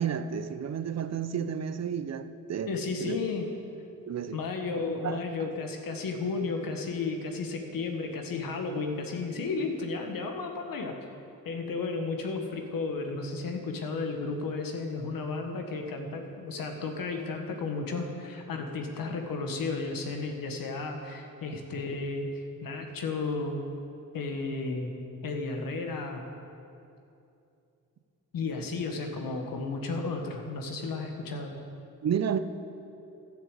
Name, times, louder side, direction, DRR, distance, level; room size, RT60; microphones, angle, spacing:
voice 1, 0.0-2.7 3.0-3.2 4.1-4.4 5.0-5.2 32.0-32.4, right 8 dB, 50° right, 11 dB, 0.6 m, -31 dB
voice 2, 2.7-3.5 4.3-10.9 11.4-23.6 24.1-24.9 25.2-26.2 28.3-31.5, left 3 dB, 85° left, 4 dB, 1.4 m, -33 dB
12.0 x 6.6 x 8.1 m, 2.7 s
cardioid pair, 105°, 33 cm